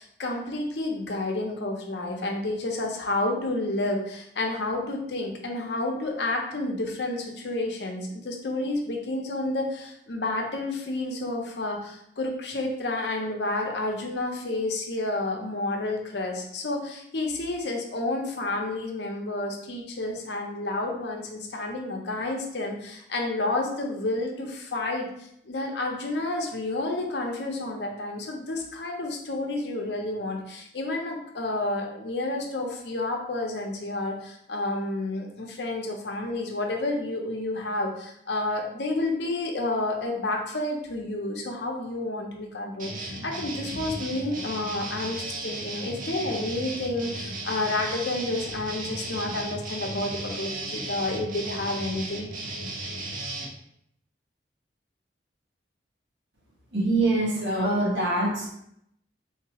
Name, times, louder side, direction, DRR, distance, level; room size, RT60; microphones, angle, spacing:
voice 1, 0.0-25.1 25.5-52.3, left 2 dB, 70° left, 1 dB, 0.7 m, -30 dB
sound 1, 42.8-53.5, right 2 dB, 45° right, 0.6 m, -35 dB
voice 2, 56.7-58.5, right 2 dB, 75° right, -4 dB, 1.3 m, -24 dB
3.9 x 2.8 x 2.8 m, 0.73 s
head